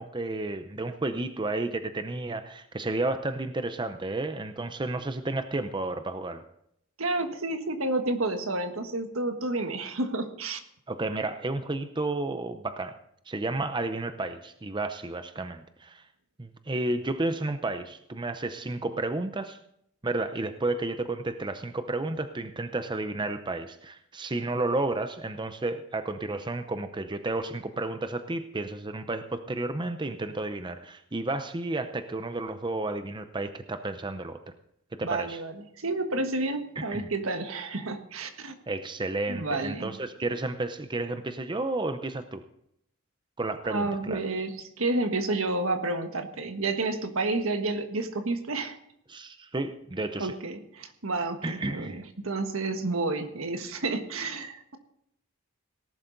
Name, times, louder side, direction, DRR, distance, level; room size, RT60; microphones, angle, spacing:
voice 1, 0.0-6.4 10.9-13.0 13.3-16.0 16.4-19.6 20.0-34.4 34.9-35.4 36.8-37.1 38.7-42.4 43.4-44.2 49.1-50.3 51.4-52.0, right 2 dB, 20° right, 9 dB, 0.7 m, -32 dB
voice 2, 7.0-10.6 35.0-38.5 39.3-39.9 43.7-48.8 50.2-54.8, right 2 dB, 75° right, 7 dB, 1.5 m, -30 dB
18.0 x 11.5 x 4.0 m, 0.73 s
head